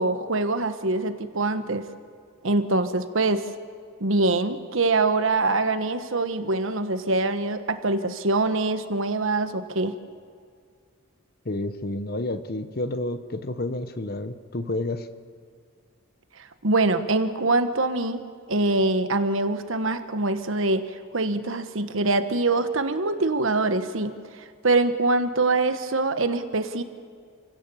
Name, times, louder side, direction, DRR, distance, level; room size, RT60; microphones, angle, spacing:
voice 1, 0.0-1.8 2.4-3.4 4.0-9.9 16.6-18.2 18.5-24.1 24.6-26.8, right 2 dB, 70° right, 10 dB, 1.3 m, -24 dB
voice 2, 11.4-15.1, left 2 dB, 45° left, 11 dB, 1.0 m, -30 dB
28.5 x 17.0 x 7.1 m, 2.1 s
head